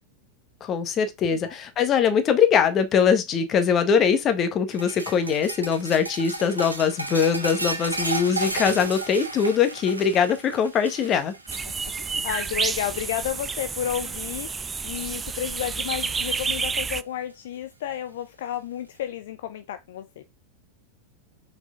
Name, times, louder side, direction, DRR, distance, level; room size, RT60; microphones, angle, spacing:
voice 1, 0.6-11.3, left 7 dB, 30° left, 1.4 m, -22 dB
sound 1, 4.7-13.2 13.5-13.9 14.3-15.1 16.5-16.6 17.8-17.9, right 2 dB, 85° right, 1.4 m, -33 dB
sound 2, 11.5-17.0, right 5 dB, 15° right, 0.4 m, -30 dB
voice 2, 11.8-20.2, left 10 dB, 55° left, 0.6 m, -32 dB
6.2 x 4.9 x 3.7 m
figure-of-eight pair, 90°, 0 cm